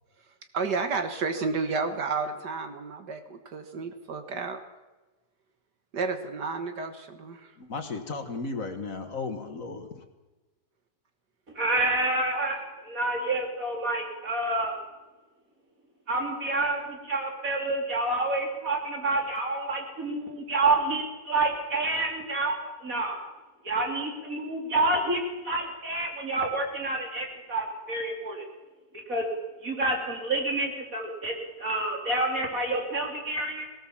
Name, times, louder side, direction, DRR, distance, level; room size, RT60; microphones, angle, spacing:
voice 1, 0.6-4.6 5.9-7.5, right 4 dB, 70° right, 7 dB, 2.0 m, -31 dB
voice 2, 7.6-10.0, left 4 dB, 50° left, 7 dB, 1.9 m, -35 dB
voice 3, 11.5-12.6 12.8-14.7 16.1-22.6 22.8-23.2 23.6-28.4 29.1-29.3 29.6-31.3 31.6-33.7, right 2 dB, 50° right, 1 dB, 4.0 m, -28 dB
20.0 x 18.5 x 7.3 m, 1.2 s
omnidirectional pair, 1.9 m